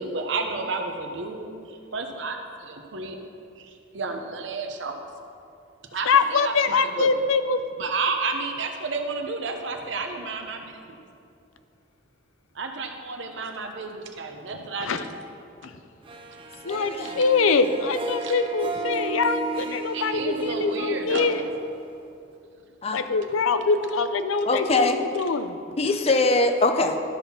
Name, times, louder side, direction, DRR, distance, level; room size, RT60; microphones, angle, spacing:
voice 1, 0.0-3.2 3.6-5.0 5.9-7.1 7.8-10.8 12.5-15.1 17.0-17.3 18.2-18.3 19.9-21.5 23.0-23.1, right 3 dB, 65° right, 4 dB, 0.8 m, -31 dB
voice 2, 6.1-7.6 14.8-15.0 15.6-15.7 16.6-21.4 22.9-25.6, left 4 dB, 90° left, 10 dB, 0.5 m, -24 dB
Harp, 16.1-22.3, right 2 dB, 25° right, 0.5 m, -34 dB
voice 3, 16.6-17.1 22.8-23.0 24.4-25.0 25.8-27.0, left 2 dB, 30° left, 7 dB, 0.5 m, -22 dB
12.0 x 4.2 x 5.7 m, 2.6 s
head